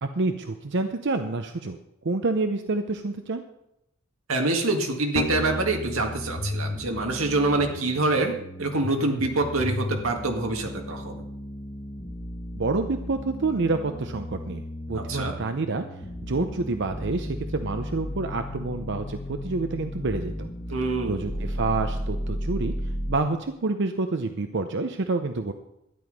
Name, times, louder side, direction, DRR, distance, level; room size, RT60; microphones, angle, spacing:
voice 1, 0.0-1.8 2.0-3.4 12.5-14.6 14.9-15.9 16.3-20.5 21.1-22.7 23.1-25.5, right 3 dB, 60° right, 7 dB, 0.7 m, -28 dB
voice 2, 4.3-11.2 14.9-15.3 20.7-21.5, right 2 dB, 90° right, 3 dB, 1.9 m, -26 dB
sound 1, 5.1-23.1, left 1 dB, 25° left, 1.6 m, -34 dB
12.5 x 9.9 x 5.3 m, 0.82 s
head